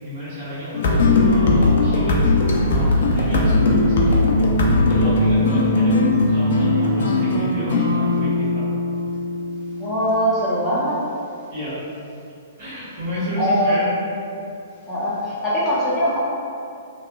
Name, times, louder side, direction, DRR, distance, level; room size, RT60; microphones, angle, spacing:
voice 1, 0.0-2.3 2.7-4.4 4.9-6.0 6.3-8.6 9.1-9.2 11.5-11.8 12.6-13.9, equal, 50° right, -11 dB, 1.4 m, -30 dB
sound 1, 0.7-10.2, left 2 dB, 60° left, 0.4 m, -19 dB
voice 2, 9.8-11.0 13.4-13.8 14.9-16.2, equal, 10° left, -10 dB, 0.6 m, -21 dB
3.1 x 2.1 x 2.3 m, 2.5 s
figure-of-eight pair, 115°, 0 cm